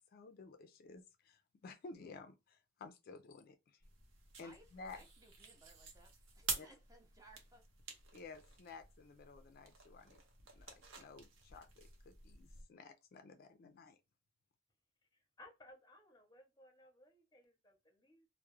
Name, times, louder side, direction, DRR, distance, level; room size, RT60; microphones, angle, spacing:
voice 1, 0.1-3.8 4.4-5.0 6.6-6.7 8.1-10.2 10.5-14.0, left 4 dB, 50° left, 0.3 m, -54 dB
sound 1, 3.8-12.6, right 5 dB, 85° right, 0.7 m, -49 dB
voice 2, 4.4-7.6, right 2 dB, 20° right, 0.5 m, -63 dB
voice 3, 6.5-6.8 15.1-18.3, left 1 dB, 20° left, 0.7 m, -62 dB
2.3 x 2.0 x 3.0 m
head